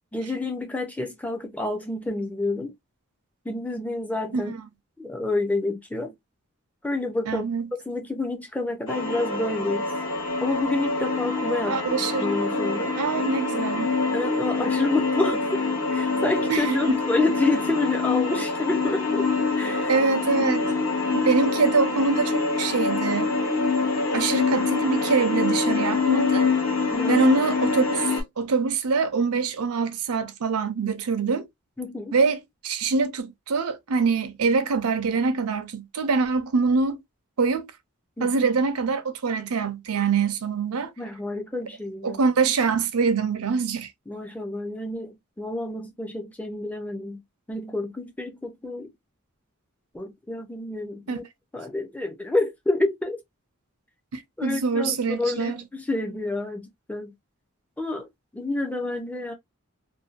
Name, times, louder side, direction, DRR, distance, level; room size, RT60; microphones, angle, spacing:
voice 1, 0.1-2.7 3.5-4.5 5.0-6.1 6.8-7.5 7.9-9.9 10.4-13.0 14.1-19.3 19.6-19.9 20.4-20.5 26.9-27.2 31.8-32.1 38.2-38.3 41.0-42.2 44.1-47.2 47.5-48.9 49.9-51.2 51.5-53.2 54.4-57.1 57.8-58.1 58.3-59.3, left 2 dB, 5° left, 0.4 m, -28 dB
voice 2, 7.3-7.7 11.7-12.3 12.5-12.6 13.0-14.0 16.5-17.0 19.9-20.7 21.1-23.3 24.1-26.5 27.1-31.4 32.1-37.0 37.4-37.7 38.2-40.9 42.0-43.9 51.1-51.2 54.1-55.6, right 4 dB, 90° right, 0.5 m, -24 dB
sound 1, 8.9-28.2, left 3 dB, 65° left, 1.1 m, -25 dB
2.6 x 2.2 x 2.4 m
head